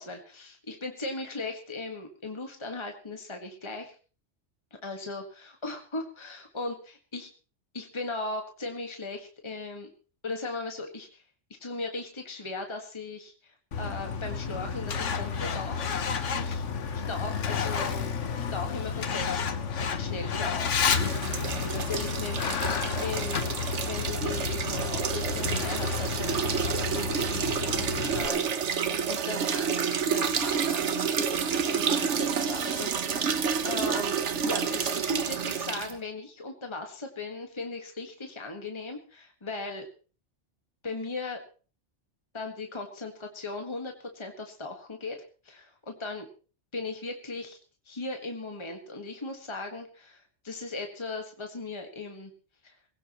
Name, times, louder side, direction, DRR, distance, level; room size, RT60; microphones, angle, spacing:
voice 1, 0.0-4.0 4.8-7.3 7.7-9.9 10.2-11.2 11.6-15.9 16.3-16.6 16.9-18.1 18.4-19.4 19.8-20.8 21.6-39.9 40.8-41.4 42.3-46.3 46.7-47.6 47.9-52.3 52.6-52.7, left 3 dB, 25° left, 3 dB, 1.7 m, -38 dB
Truck, 13.7-28.3, left 6 dB, 80° left, 1.4 m, -31 dB
sound 1, 20.8-35.9, right 7 dB, 75° right, 1.3 m, -29 dB
20.0 x 17.0 x 3.1 m, 0.38 s
omnidirectional pair, 1.2 m